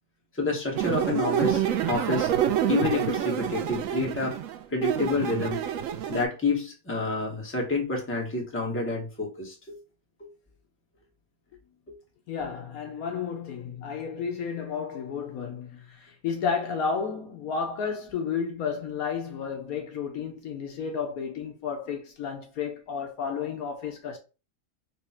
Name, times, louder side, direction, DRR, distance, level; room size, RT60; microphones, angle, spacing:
voice 1, 0.3-2.3 2.7-4.4 4.7-5.6 6.1-9.8, left 3 dB, 10° left, 1.0 m, -28 dB
sound 1, 0.7-6.2, right 10 dB, 70° right, 0.8 m, -27 dB
voice 2, 12.3-24.2, left 6 dB, 70° left, 1.1 m, -32 dB
4.0 x 2.4 x 4.2 m
omnidirectional pair, 1.7 m